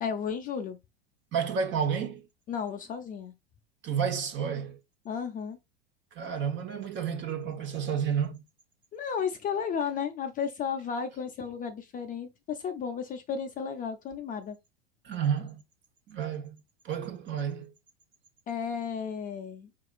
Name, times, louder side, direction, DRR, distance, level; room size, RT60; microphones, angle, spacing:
voice 1, 0.0-0.8 2.5-3.3 5.0-5.6 8.9-14.6 18.5-19.7, left 7 dB, 25° left, 0.6 m, -33 dB
voice 2, 1.3-2.2 3.8-4.8 6.2-8.4 15.0-15.6 16.1-16.6 16.8-17.7, right 7 dB, 35° right, 1.1 m, -30 dB
4.8 x 3.7 x 2.4 m
hypercardioid pair, 100°, 33 cm